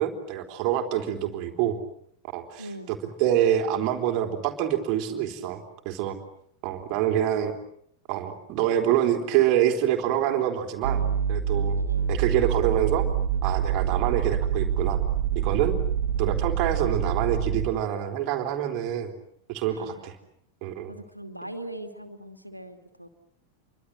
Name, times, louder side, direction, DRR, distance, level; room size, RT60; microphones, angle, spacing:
voice 1, 0.0-1.8 2.3-6.2 6.6-7.5 8.1-11.0 11.3-11.8 12.1-13.1 13.4-15.0 15.4-15.7 16.2-19.1 19.5-20.2 20.6-20.9, right 11 dB, 40° right, 5 dB, 3.7 m, -26 dB
voice 2, 2.6-2.9 10.9-11.2 11.8-12.1 19.7-20.1 20.9-23.1, right 1 dB, 90° right, 7 dB, 2.6 m, -41 dB
sound 1, 10.8-17.7, right 8 dB, 60° right, 2.6 m, -26 dB
28.5 x 24.5 x 7.8 m, 0.69 s
figure-of-eight pair, 90°, 0 cm